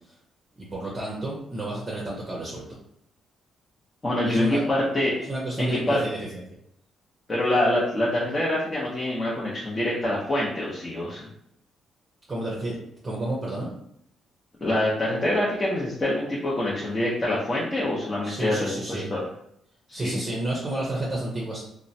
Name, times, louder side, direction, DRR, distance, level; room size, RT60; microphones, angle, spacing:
voice 1, 0.6-2.7 4.3-4.7 5.2-6.4 12.3-12.8 13.0-13.7 18.2-19.1 19.9-21.6, right 1 dB, 30° right, -4 dB, 0.7 m, -30 dB
voice 2, 4.0-5.1 5.6-6.0 7.3-11.3 14.6-19.3 19.9-20.2, left 1 dB, 25° left, -6 dB, 0.7 m, -25 dB
3.0 x 2.1 x 2.7 m, 0.73 s
cardioid pair, 90°, 0 cm